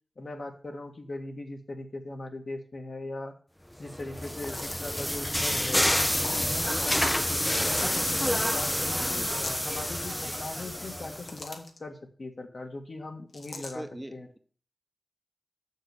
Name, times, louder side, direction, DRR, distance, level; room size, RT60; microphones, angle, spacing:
voice 1, 0.2-3.3 3.8-5.9 6.2-9.3 9.6-13.8 14.1-14.3, left 2 dB, 60° left, 3 dB, 1.8 m, -40 dB
sound 1, 3.9-11.4, equal, 10° left, 0.4 m, -28 dB
sound 2, 4.2-5.0 6.1-6.5 7.5-8.0 9.3-9.7 10.9-11.8 13.3-13.8, left 3 dB, 85° left, 1.3 m, -42 dB
voice 2, 13.6-14.4, right 1 dB, 15° right, 8 dB, 0.8 m, -42 dB
6.8 x 6.5 x 7.7 m, 0.44 s
wide cardioid pair, 75°, 0 cm